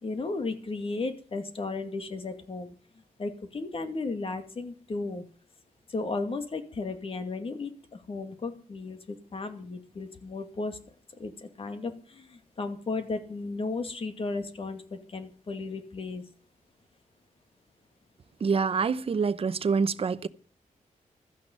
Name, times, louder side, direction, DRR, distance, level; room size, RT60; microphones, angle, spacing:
voice 1, 0.0-2.7 3.2-5.2 5.9-10.8 11.2-16.2, left 3 dB, 45° left, 2.4 m, -35 dB
voice 2, 18.4-20.3, right 5 dB, 45° right, 0.8 m, -26 dB
16.0 x 13.5 x 5.5 m
wide cardioid pair, 170°, 14 cm